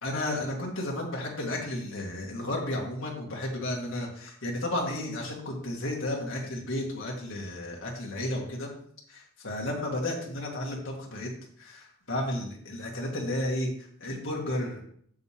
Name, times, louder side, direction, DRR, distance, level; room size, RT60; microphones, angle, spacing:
voice 1, 0.0-8.7 9.1-11.3 11.6-14.8, left 1 dB, 65° left, -2 dB, 2.1 m, -33 dB
7.8 x 7.3 x 3.6 m, 0.64 s
head